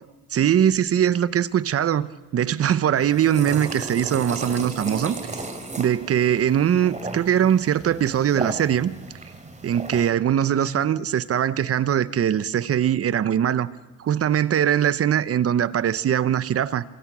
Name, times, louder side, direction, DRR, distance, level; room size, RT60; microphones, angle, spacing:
voice 1, 0.3-5.4 5.8-8.9 9.6-13.7 14.0-16.8, right 9 dB, 40° right, 0.9 m, -21 dB
sound 1, 3.0-10.1, right 3 dB, 20° right, 3.4 m, -35 dB
27.5 x 25.0 x 6.2 m
cardioid pair, 100°, 37 cm